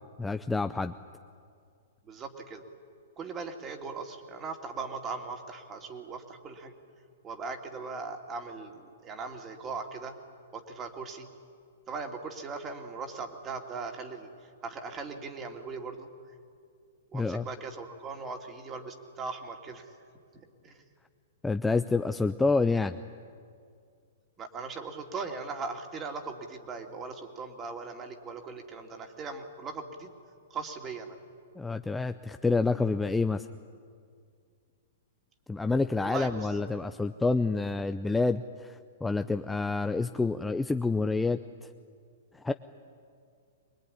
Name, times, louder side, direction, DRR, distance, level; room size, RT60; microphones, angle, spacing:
voice 1, 0.2-0.9 17.1-17.4 21.4-23.0 31.6-33.5 35.5-41.4 42.4-42.5, left 3 dB, 5° left, 9 dB, 0.6 m, -28 dB
voice 2, 2.0-2.6 3.2-6.7 7.2-10.2 10.5-11.3 11.9-16.1 17.1-19.9 20.3-20.8 24.4-30.1 30.5-31.2 36.0-36.6, right 4 dB, 25° right, 4 dB, 2.7 m, -39 dB
24.0 x 21.0 x 9.9 m, 2.2 s
hypercardioid pair, 130°, 0 cm